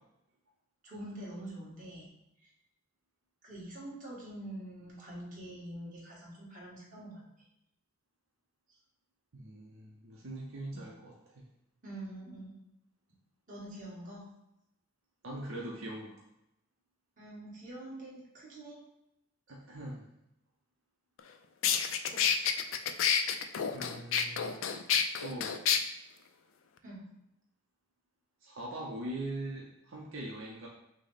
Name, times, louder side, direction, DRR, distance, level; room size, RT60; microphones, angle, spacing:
voice 1, 0.8-2.1 2.4-2.5 3.4-7.5 10.7-10.9 11.8-12.5 13.5-14.3 17.2-18.8 22.1-22.2 26.8-27.1, right 1 dB, 40° right, -6 dB, 1.6 m, -45 dB
voice 2, 9.3-11.4 15.2-16.2 19.5-20.0 21.8-22.1 23.7-24.5 25.2-25.6 28.4-30.7, right 1 dB, 75° right, -3 dB, 0.7 m, -42 dB
sound 1, 21.2-21.3 21.6-25.8, left 8 dB, 70° left, 0.4 m, -29 dB
6.1 x 2.1 x 4.0 m, 0.83 s
head